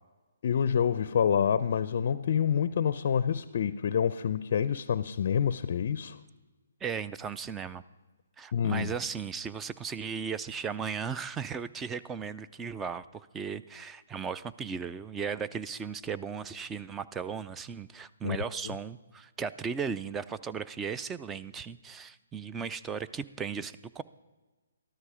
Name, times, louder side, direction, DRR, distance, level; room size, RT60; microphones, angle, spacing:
voice 1, 0.4-6.2 8.5-8.9 18.2-18.4 18.6-18.7, left 8 dB, 50° left, 14 dB, 0.5 m, -27 dB
voice 2, 6.8-7.8 8.4-24.0, right 6 dB, 10° right, 14 dB, 0.3 m, -36 dB
13.5 x 12.5 x 4.9 m, 1.3 s
hypercardioid pair, 155°, 0 cm